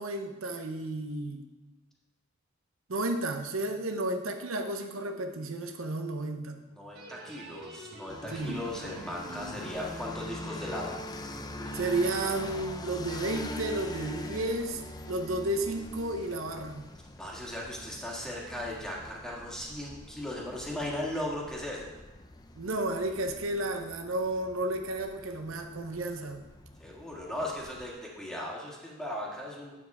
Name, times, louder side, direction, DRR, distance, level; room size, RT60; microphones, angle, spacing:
voice 1, 0.0-1.4 2.9-6.6 8.3-8.6 11.7-14.8 15.1-16.9 22.6-26.4, right 2 dB, 75° right, 5 dB, 0.8 m, -32 dB
voice 2, 6.7-11.0 17.2-21.9 26.8-29.7, left 1 dB, 5° left, -3 dB, 1.8 m, -37 dB
sound 1, 6.9-12.6, equal, 55° right, 1.3 m, -44 dB
sound 2, 8.1-27.9, left 2 dB, 20° left, 0.5 m, -44 dB
8.2 x 7.4 x 4.8 m, 1.1 s
head